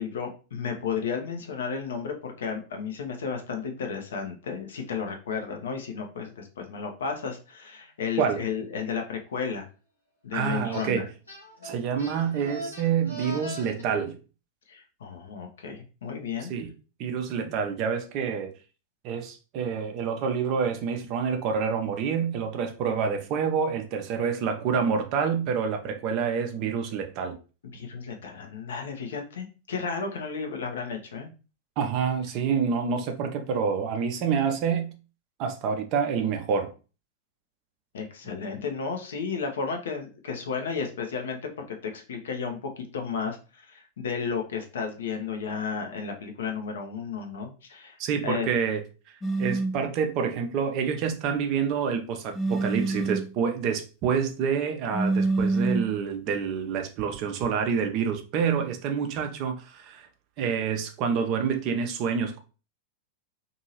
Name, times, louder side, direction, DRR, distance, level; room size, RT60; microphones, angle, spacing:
voice 1, 0.0-9.7 10.2-11.1 14.7-16.5 27.7-31.3 37.9-48.0 48.2-48.5, left 5 dB, 65° left, 0.6 m, -33 dB
voice 2, 10.3-11.1 11.6-14.2 16.5-16.7 17.0-18.5 19.0-27.3 31.8-34.9 35.4-36.7 48.0-48.8 49.4-60.1 60.4-62.4, right 6 dB, 40° right, 0.6 m, -27 dB
sound 1, 10.7-10.9 11.3-13.8, equal, 80° left, 1.0 m, -40 dB
sound 2, 49.2-49.8 52.3-53.3 54.9-55.9, right 3 dB, 20° left, 0.5 m, -26 dB
2.7 x 2.7 x 2.8 m
figure-of-eight pair, 90°, 0 cm